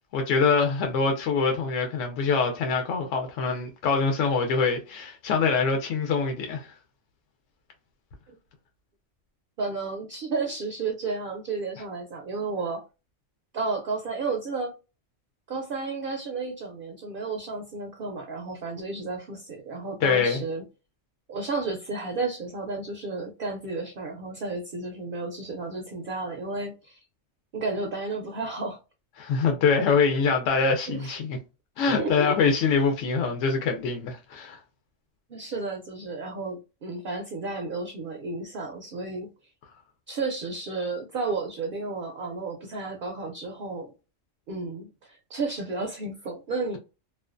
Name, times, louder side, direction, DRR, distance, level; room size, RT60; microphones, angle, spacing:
voice 1, 0.1-6.7 20.0-20.4 29.2-31.4 31.8-34.6, left 5 dB, 75° left, 0.9 m, -24 dB
voice 2, 9.6-12.8 13.5-14.7 15.5-20.6 21.3-27.0 27.5-28.8 30.9-31.2 32.0-32.3 35.3-39.3 40.1-43.9 44.5-46.8, right 3 dB, 65° right, 0.5 m, -32 dB
2.5 x 2.2 x 2.3 m
omnidirectional pair, 1.3 m